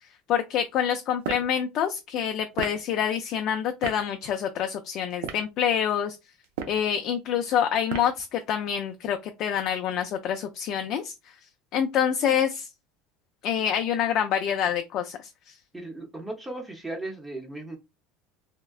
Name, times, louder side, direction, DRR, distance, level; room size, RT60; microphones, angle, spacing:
voice 1, 0.3-6.2 6.7-11.1 11.7-12.7 13.4-15.5, left 9 dB, 50° left, 0.4 m, -26 dB
sound 1, 1.2-1.5 2.5-2.8 3.8-4.0 5.1-5.5 6.4-6.8 7.9-8.2, right 7 dB, 85° right, 0.5 m, -33 dB
voice 2, 15.7-17.8, right 2 dB, 10° right, 0.7 m, -36 dB
3.5 x 2.1 x 2.3 m
supercardioid pair, 125°, 0 cm